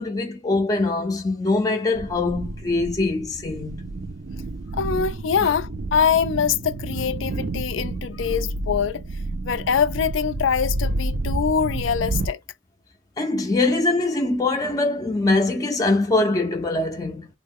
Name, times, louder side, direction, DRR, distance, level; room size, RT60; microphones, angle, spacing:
voice 1, 0.0-3.9 13.2-17.3, left 2 dB, 20° left, 0.5 m, -23 dB
sound 1, 1.9-12.3, right 2 dB, 50° right, 0.4 m, -30 dB
voice 2, 4.7-9.0 9.4-12.4, left 7 dB, 75° left, 0.4 m, -23 dB
3.1 x 2.0 x 3.5 m
head